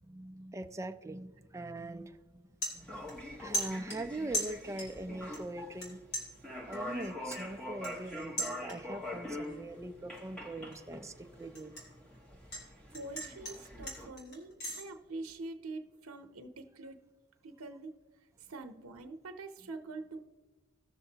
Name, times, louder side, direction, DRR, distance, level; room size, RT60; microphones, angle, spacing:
voice 1, 0.0-2.2 2.7-6.0 6.7-11.8, right 2 dB, 15° right, 0.4 m, -42 dB
sound 1, 1.7-1.9 2.3-3.3 3.5-5.0 5.3-5.9 6.1-9.1 9.4-9.8 10.2-12.6 12.9-14.8, equal, 50° left, 3.2 m, -39 dB
sound 2, 2.7-14.1, left 1 dB, 5° left, 1.3 m, -44 dB
voice 2, 12.9-17.0 17.4-17.9 18.4-20.2, right 2 dB, 90° right, 0.7 m, -45 dB
18.0 x 6.7 x 2.8 m
head